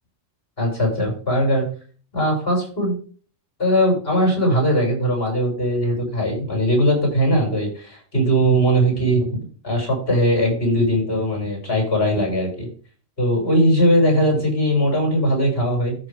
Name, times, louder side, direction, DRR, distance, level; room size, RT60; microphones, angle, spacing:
voice 1, 0.6-1.6 2.1-3.0 3.6-9.3 9.6-12.7 13.2-16.0, equal, 45° left, 0 dB, 6.7 m, -19 dB
14.0 x 6.4 x 3.6 m, 0.40 s
omnidirectional pair, 1.4 m